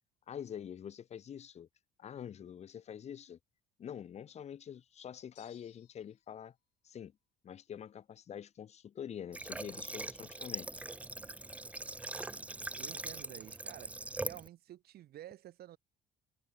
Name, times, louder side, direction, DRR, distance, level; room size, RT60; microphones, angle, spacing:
voice 1, 0.3-1.7 2.0-3.4 3.8-6.5 6.8-7.1 7.4-10.7, left 9 dB, 40° left, 0.8 m, -46 dB
sound 1, 5.3-6.3, left 17 dB, 80° left, 6.7 m, -64 dB
Water / Water tap faucet, 9.3-14.5, right 2 dB, 10° right, 0.3 m, -42 dB
voice 2, 12.8-13.9 14.2-15.8, right 13 dB, 65° right, 4.1 m, -51 dB
cardioid pair, 110°, 17 cm